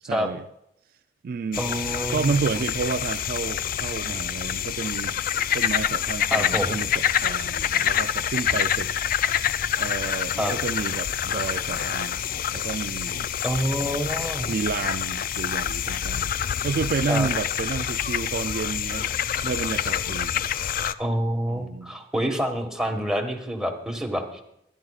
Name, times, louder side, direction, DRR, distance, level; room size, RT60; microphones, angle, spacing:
voice 1, 0.1-0.4 1.2-1.7 2.1-5.2 5.5-8.9 9.8-12.2 12.5-13.3 13.8-13.9 14.5-16.3 16.6-20.4 21.5-22.0, right 5 dB, 55° right, 0.3 m, -30 dB
sound 1, 1.5-20.9, left 9 dB, 50° left, 0.4 m, -27 dB
voice 2, 1.6-2.4 6.3-6.8 10.4-10.5 13.4-14.5 17.1-17.3 21.0-24.4, equal, 5° right, 1.5 m, -27 dB
23.0 x 11.0 x 2.4 m
head